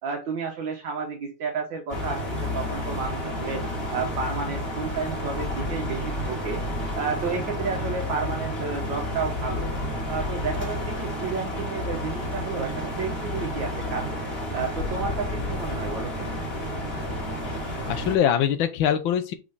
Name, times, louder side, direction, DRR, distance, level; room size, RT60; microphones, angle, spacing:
voice 1, 0.0-6.6 7.0-9.7 10.1-14.2 14.5-16.3, right 5 dB, 75° right, 1.8 m, -32 dB
sound 1, 1.9-18.2, left 1 dB, 30° left, 2.0 m, -30 dB
voice 2, 17.4-19.3, left 9 dB, 90° left, 1.6 m, -24 dB
5.1 x 4.7 x 4.0 m
omnidirectional pair, 2.1 m